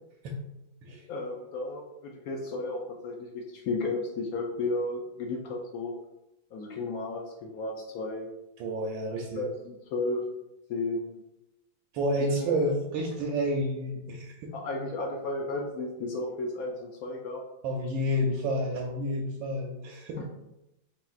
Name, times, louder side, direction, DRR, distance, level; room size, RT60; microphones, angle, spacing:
voice 1, 1.1-5.9 6.5-8.3 9.1-10.2 10.7-11.1 12.2-12.5 14.5-17.4 20.2-20.3, left 2 dB, 90° left, 0 dB, 0.7 m, -33 dB
voice 2, 8.6-9.5 11.9-14.5 17.6-20.2, equal, 80° right, 0 dB, 1.3 m, -30 dB
4.6 x 3.5 x 2.4 m, 0.90 s
omnidirectional pair, 2.2 m